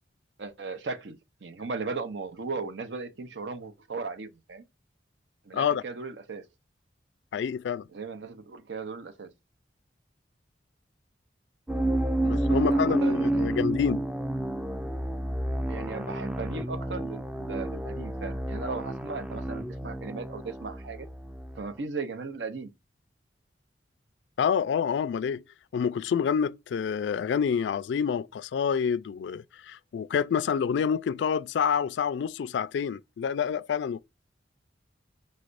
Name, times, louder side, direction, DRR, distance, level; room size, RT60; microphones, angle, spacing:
voice 1, 0.4-4.6 5.4-6.5 7.9-9.3 12.4-13.4 15.3-21.1 21.6-22.7, right 4 dB, 75° right, 0.7 m, -37 dB
voice 2, 7.3-7.9 12.2-14.0 24.4-25.4 25.7-34.0, left 7 dB, 75° left, 0.3 m, -28 dB
sound 1, 11.7-21.6, right 1 dB, 5° right, 0.4 m, -30 dB
5.4 x 3.2 x 2.5 m
head